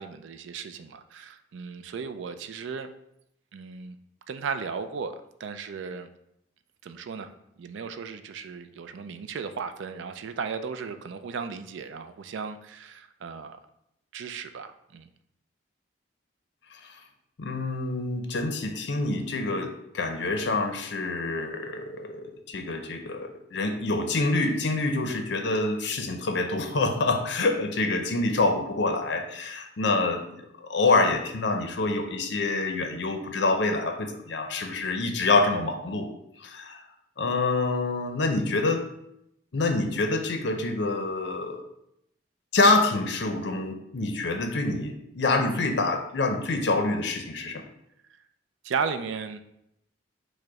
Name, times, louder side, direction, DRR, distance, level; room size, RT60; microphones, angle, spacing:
voice 1, 0.0-2.9 3.5-4.0 4.3-6.1 6.8-7.3 7.6-13.6 14.1-15.1 48.6-49.4, right 5 dB, 75° right, 10 dB, 0.3 m, -35 dB
voice 2, 17.4-30.4 30.7-36.1 36.4-36.8 37.2-38.8 39.5-41.6 42.5-47.6, left 3 dB, 60° left, 5 dB, 0.5 m, -26 dB
4.8 x 2.1 x 4.7 m, 0.79 s
head